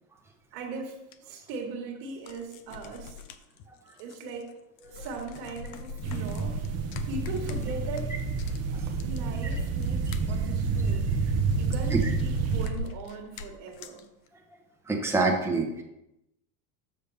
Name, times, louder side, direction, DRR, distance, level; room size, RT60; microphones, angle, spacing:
voice 1, 0.5-3.2 4.0-4.5 4.9-6.5 7.1-8.1 9.0-11.1 11.6-14.0, right 3 dB, 65° right, 2 dB, 1.5 m, -39 dB
sound 1, 1.1-1.2 2.1-4.5 4.8-14.0, left 4 dB, 60° left, 0.7 m, -40 dB
sound 2, 6.0-12.7, right 5 dB, 30° right, 0.6 m, -29 dB
voice 2, 14.9-15.8, right 3 dB, 5° right, 0 dB, 0.9 m, -26 dB
7.1 x 6.6 x 3.4 m, 0.91 s
cardioid pair, 150°, 50 cm